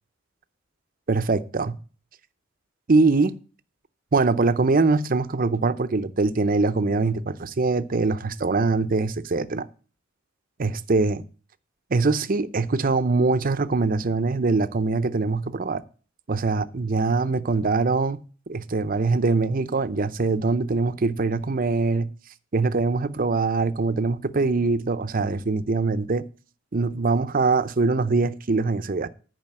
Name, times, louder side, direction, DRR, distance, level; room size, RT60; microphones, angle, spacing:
voice 1, 1.1-1.8 2.9-3.3 4.1-9.7 10.6-11.2 11.9-15.8 16.3-18.2 18.5-22.1 22.5-26.3 26.7-29.1, right 3 dB, 45° right, 0.6 m, -23 dB
10.5 x 5.0 x 7.5 m
head